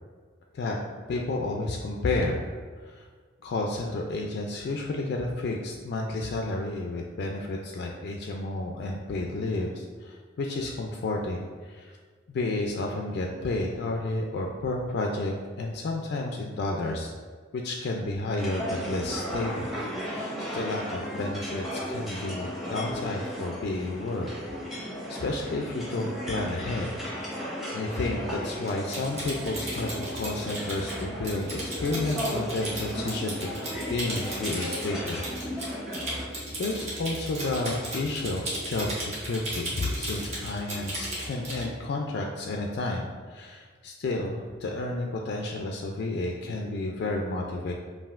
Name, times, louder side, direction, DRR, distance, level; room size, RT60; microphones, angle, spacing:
voice 1, 1.1-2.5 2.8-3.1 3.4-11.9 12.3-17.1 17.5-19.7 20.0-24.3 24.7-26.9 27.7-33.5 33.9-35.8 36.6-47.7, left 2 dB, 55° left, 1 dB, 0.3 m, -31 dB
sound 1, 18.4-36.2, equal, ahead, 0.7 m, -35 dB
Typing, 28.7-41.7, right 1 dB, 35° right, 1.1 m, -35 dB
5.4 x 2.5 x 2.4 m, 1.5 s
head